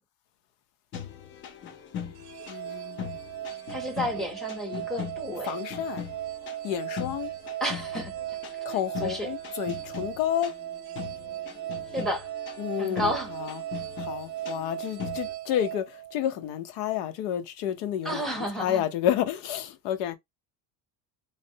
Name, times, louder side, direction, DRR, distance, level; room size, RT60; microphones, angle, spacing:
sound 1, 0.9-15.3, left 8 dB, 30° left, 0.4 m, -41 dB
sound 2, 2.2-16.6, right 14 dB, 70° right, 0.5 m, -37 dB
voice 1, 2.5-3.2 5.4-6.0 6.6-7.3 8.6-10.5 12.6-13.6 14.0-18.3 18.6-20.2, left 11 dB, 90° left, 0.7 m, -30 dB
voice 2, 3.7-5.6 7.6-8.1 8.7-9.3 11.9-12.3 12.8-13.3 18.0-18.8, equal, ahead, 0.7 m, -31 dB
3.1 x 2.0 x 2.7 m
cardioid pair, 160°, 40 cm